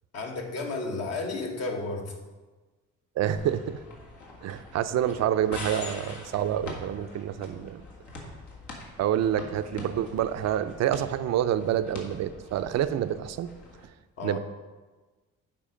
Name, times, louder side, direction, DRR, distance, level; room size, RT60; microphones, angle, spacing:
voice 1, 0.1-2.2 14.2-14.4, left 3 dB, 55° left, 2 dB, 1.4 m, -32 dB
voice 2, 3.2-3.8 4.4-7.8 9.0-13.5 14.2-14.4, right 10 dB, 60° right, 11 dB, 0.5 m, -27 dB
sound 1, 3.4-13.8, left 2 dB, 75° left, 1.7 m, -44 dB
7.5 x 5.0 x 5.0 m, 1.3 s
cardioid pair, 90°, 30 cm